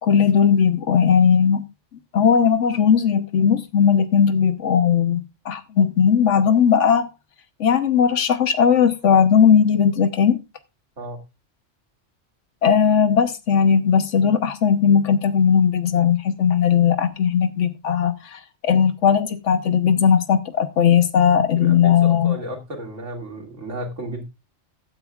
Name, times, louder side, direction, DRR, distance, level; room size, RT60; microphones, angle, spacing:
voice 1, 0.0-1.6 2.1-7.1 7.6-10.4 12.6-22.4, left 7 dB, 80° left, 1.4 m, -18 dB
voice 2, 21.6-24.2, right 1 dB, 85° right, 2.9 m, -33 dB
15.0 x 9.5 x 2.4 m
omnidirectional pair, 1.2 m